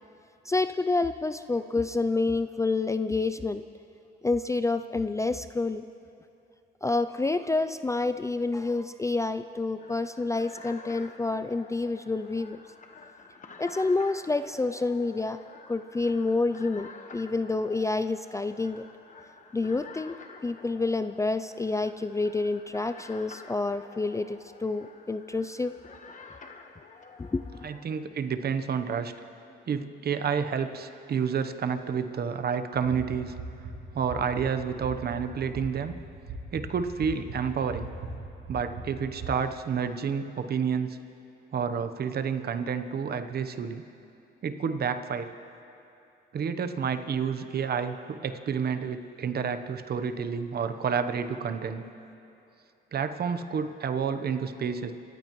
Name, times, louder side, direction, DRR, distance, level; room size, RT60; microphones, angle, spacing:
voice 1, 0.5-3.6 4.2-5.8 6.8-12.6 13.6-15.4 15.7-18.8 19.5-20.2 20.4-26.0 27.2-27.5, left 3 dB, 15° left, 11 dB, 0.3 m, -28 dB
sound 1, 9.8-27.8, left 4 dB, 40° left, 1.3 m, -49 dB
voice 2, 27.6-29.1 29.7-33.3 33.9-35.9 36.5-37.9 38.5-41.0 41.5-43.8 44.4-45.3 46.3-51.8 52.9-54.9, right 6 dB, 50° right, 9 dB, 1.0 m, -29 dB
sound 2, 32.7-39.3, right 3 dB, 90° right, 3.8 m, -41 dB
27.5 x 15.0 x 3.1 m, 2.7 s
cardioid pair, 90°, 20 cm